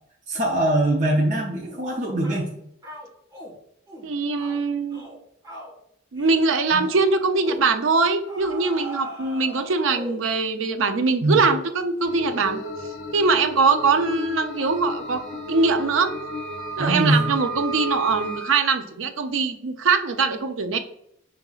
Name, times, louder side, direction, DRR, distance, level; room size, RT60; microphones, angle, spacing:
voice 1, 0.3-2.5 6.7-6.8 11.2-11.4 16.8-17.3, right 1 dB, 40° right, -3 dB, 0.6 m, -22 dB
sound 1, 1.6-1.8 2.2-2.5 2.8-3.5 3.9-4.1 4.4-4.6 4.9-5.2 5.4-5.7 6.2-6.5 6.8-7.0 7.4-7.7 8.3-10.3, equal, 20° right, 1.3 m, -39 dB
voice 2, 4.0-5.0 6.1-12.6 13.1-15.2 15.5-16.1 16.8-20.8, right 4 dB, 85° right, 8 dB, 0.5 m, -22 dB
sound 2, 12.0-18.4, left 3 dB, 65° left, 0.5 m, -35 dB
Wind instrument woodwind instrument, 14.3-18.6, right 6 dB, 5° left, 0.3 m, -35 dB
5.2 x 2.9 x 2.3 m, 0.74 s
head